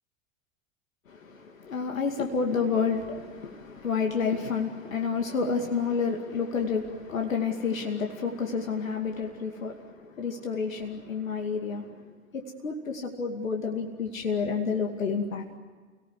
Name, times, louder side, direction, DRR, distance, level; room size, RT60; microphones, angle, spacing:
voice 1, 1.1-15.5, left 5 dB, 90° left, 2.6 m, -30 dB
30.0 x 19.0 x 9.2 m
hypercardioid pair, 90°, 39 cm